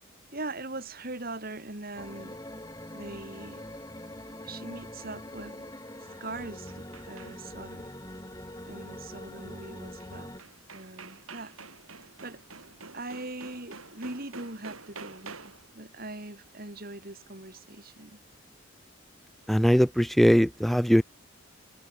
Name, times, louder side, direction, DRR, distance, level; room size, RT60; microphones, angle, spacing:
voice 1, 0.3-2.4 2.9-3.6 4.4-5.6 6.0-7.9 8.6-10.3 10.7-11.6 12.0-12.4 12.9-18.2, right 2 dB, 45° right, 3.0 m, -41 dB
sound 1, 2.0-10.4, left 1 dB, 15° left, 7.8 m, -43 dB
sound 2, 5.9-7.6 10.0-10.1 10.4-15.7, right 4 dB, 85° right, 5.1 m, -48 dB
voice 2, 19.5-21.0, equal, ahead, 0.4 m, -21 dB
head